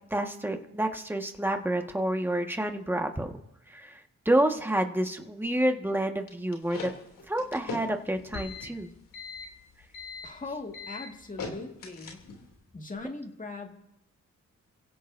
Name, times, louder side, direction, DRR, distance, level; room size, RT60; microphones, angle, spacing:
voice 1, 0.1-3.3 3.7-6.9 7.3-8.9, right 1 dB, 5° right, 4 dB, 1.6 m, -29 dB
sound 1, 6.3-12.5, left 4 dB, 85° left, 2.9 m, -40 dB
voice 2, 10.2-12.2 12.7-13.7, left 3 dB, 25° left, 3 dB, 1.9 m, -40 dB
29.5 x 16.5 x 2.7 m, 0.87 s
cardioid pair, 65°, 32 cm